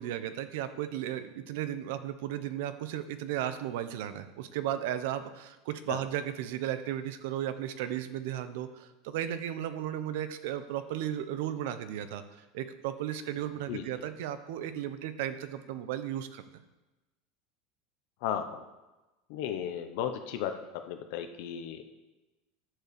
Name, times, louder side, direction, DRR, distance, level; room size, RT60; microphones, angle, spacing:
voice 1, 0.0-12.2 12.5-16.4, right 11 dB, 65° right, 11 dB, 0.8 m, -35 dB
voice 2, 18.2-18.6 19.3-20.5 20.9-21.8, left 9 dB, 60° left, 7 dB, 0.8 m, -34 dB
11.0 x 4.8 x 6.7 m, 1.1 s
supercardioid pair, 165°, 0 cm